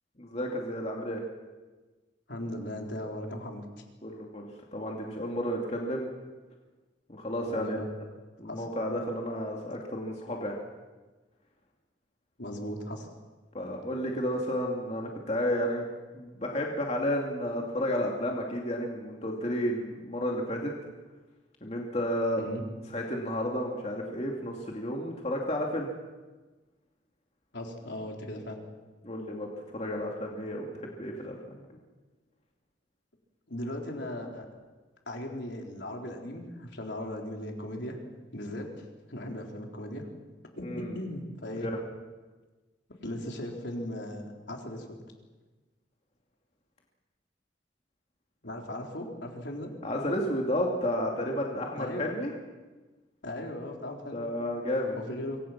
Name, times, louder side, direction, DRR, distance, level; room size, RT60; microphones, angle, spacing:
voice 1, 0.2-1.2 4.0-6.1 7.1-7.8 8.4-10.5 13.5-15.9 16.1-20.7 21.6-22.4 22.9-25.9 29.0-29.5 29.7-31.6 40.6-41.0 41.5-41.8 49.8-52.3 54.1-55.0, equal, 35° left, 0 dB, 2.7 m, -32 dB
voice 2, 2.3-3.6 7.5-7.9 8.4-8.6 12.4-13.1 22.4-22.6 27.5-28.6 33.5-34.5 35.1-38.0 38.3-40.1 40.6-41.7 43.0-44.8 48.4-49.7 51.7-52.2 53.2-54.2 55.0-55.4, left 1 dB, 70° left, 1 dB, 4.1 m, -37 dB
26.0 x 24.0 x 6.1 m, 1.3 s
head